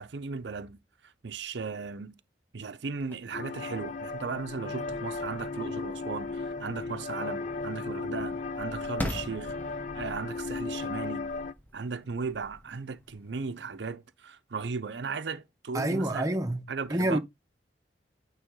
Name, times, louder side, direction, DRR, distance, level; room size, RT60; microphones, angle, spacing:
voice 1, 0.0-2.1 2.5-9.5 9.9-11.3 11.7-16.3 16.7-17.2, right 4 dB, 80° right, 0.6 m, -36 dB
sound 1, 2.9-13.9, left 1 dB, 10° left, 1.2 m, -44 dB
sound 2, 3.3-11.5, left 3 dB, 45° left, 0.5 m, -36 dB
voice 2, 15.7-16.6 16.9-17.2, right 1 dB, 20° right, 0.9 m, -27 dB
9.0 x 3.5 x 3.7 m
head